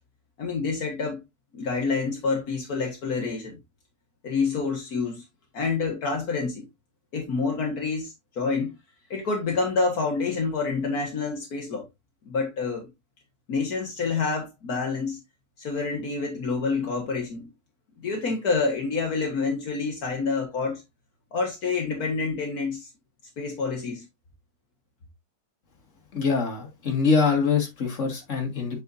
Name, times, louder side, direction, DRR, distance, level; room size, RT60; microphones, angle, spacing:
voice 1, 0.4-1.2 1.5-3.6 4.2-5.2 5.5-6.6 7.1-8.7 9.1-11.9 12.3-12.9 13.5-15.2 15.6-17.5 18.0-20.8 21.3-22.9 23.4-24.1, left 4 dB, 70° left, 2.0 m, -27 dB
voice 2, 26.1-28.8, left 5 dB, 50° left, 2.4 m, -24 dB
7.9 x 5.6 x 2.6 m
omnidirectional pair, 1.6 m